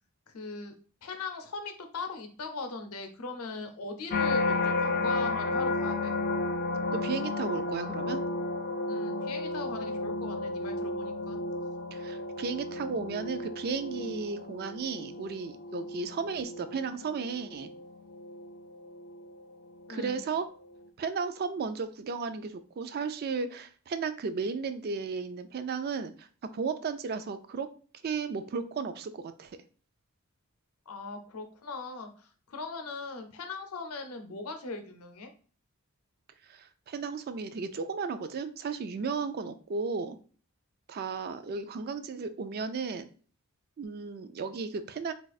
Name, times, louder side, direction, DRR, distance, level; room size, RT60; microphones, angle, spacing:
voice 1, 0.3-0.7 1.0-6.1 8.9-11.4 19.9-20.2 30.9-35.3, left 3 dB, 85° left, 6 dB, 0.6 m, -40 dB
sound 1, 4.1-19.3 19.8-20.2, left 2 dB, 45° left, 0.4 m, -33 dB
voice 2, 6.9-8.2 11.9-17.7 19.9-20.5 21.0-26.3 26.5-27.7 28.0-29.5 36.5-40.2 40.9-43.1 43.8-45.1, right 5 dB, 45° right, 11 dB, 0.3 m, -34 dB
2.4 x 2.4 x 4.0 m, 0.40 s
head